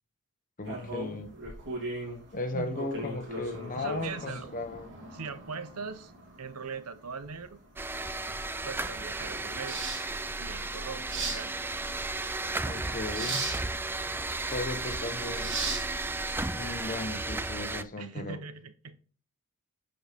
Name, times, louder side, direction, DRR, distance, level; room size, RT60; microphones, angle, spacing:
voice 1, 0.6-1.3 2.3-4.9 12.7-13.5 14.5-15.6 16.5-18.4, left 2 dB, 40° left, 1.1 m, -36 dB
sound 1, 0.6-16.8, right 2 dB, 60° right, 3.0 m, -39 dB
voice 2, 3.7-4.5 5.1-6.1 6.4-7.6 8.6-9.8 10.4-11.6 18.0-19.0, right 5 dB, 90° right, 0.9 m, -40 dB
sound 2, 7.8-17.8, right 2 dB, 10° right, 0.4 m, -34 dB
10.0 x 5.4 x 3.6 m
head